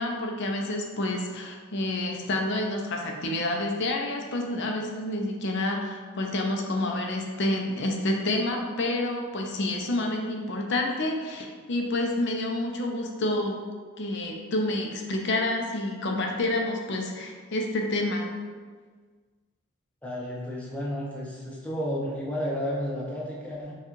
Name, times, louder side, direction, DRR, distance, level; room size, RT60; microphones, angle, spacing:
voice 1, 0.0-13.6 14.0-18.2, left 1 dB, 55° left, 1 dB, 0.5 m, -28 dB
voice 2, 20.0-23.8, equal, 5° left, -5 dB, 0.6 m, -32 dB
5.6 x 2.3 x 3.0 m, 1.5 s
head